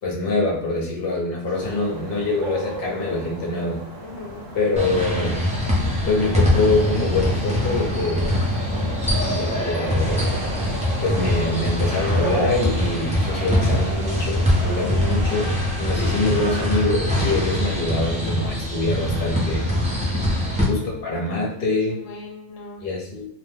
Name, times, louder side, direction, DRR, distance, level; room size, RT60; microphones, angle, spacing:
voice 1, 0.0-3.8 4.5-5.4 6.0-8.3 9.3-10.2 11.0-19.7 20.7-22.0 22.8-23.3, left 2 dB, 50° left, -2 dB, 0.9 m, -24 dB
sound 1, 1.5-15.4, right 2 dB, 75° right, 1.1 m, -34 dB
voice 2, 1.6-1.9 4.0-4.5 20.4-21.0 21.9-22.8, left 4 dB, 80° left, 0 dB, 0.9 m, -39 dB
sound 2, 4.8-20.6, left 1 dB, 10° right, 0.4 m, -23 dB
sound 3, 10.0-16.8, left 1 dB, 60° right, 1.2 m, -38 dB
2.6 x 2.1 x 3.3 m, 0.71 s
omnidirectional pair, 1.3 m